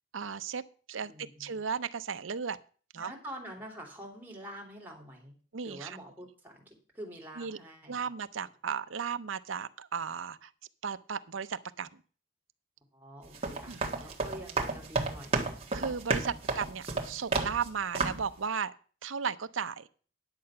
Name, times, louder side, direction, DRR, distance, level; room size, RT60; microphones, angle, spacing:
voice 1, 0.1-0.6 0.9-2.6 2.9-3.1 5.5-6.0 7.4-7.6 7.9-10.5 10.8-11.9 13.7-13.8 15.7-18.7 19.0-19.9, right 6 dB, 85° right, 12 dB, 0.7 m, -35 dB
voice 2, 1.0-1.6 3.0-5.3 5.6-8.1 8.4-8.5 12.9-15.5 16.3-16.4, equal, 10° right, 0 dB, 3.1 m, -46 dB
sound 1, 13.2-17.7 17.9-18.3, right 3 dB, 30° right, 1.6 m, -32 dB
10.5 x 7.6 x 5.8 m, 0.40 s
head